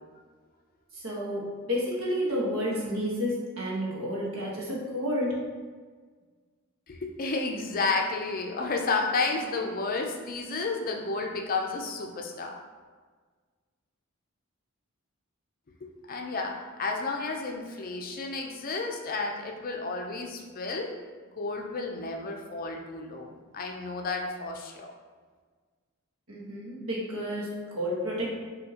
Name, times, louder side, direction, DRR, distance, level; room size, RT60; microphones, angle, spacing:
voice 1, 0.9-5.4 26.3-28.3, equal, 75° right, -5 dB, 1.2 m, -31 dB
voice 2, 6.9-12.6 15.8-21.0 21.3-24.9, left 3 dB, 45° left, 2 dB, 0.5 m, -32 dB
5.3 x 2.8 x 2.8 m, 1.5 s
head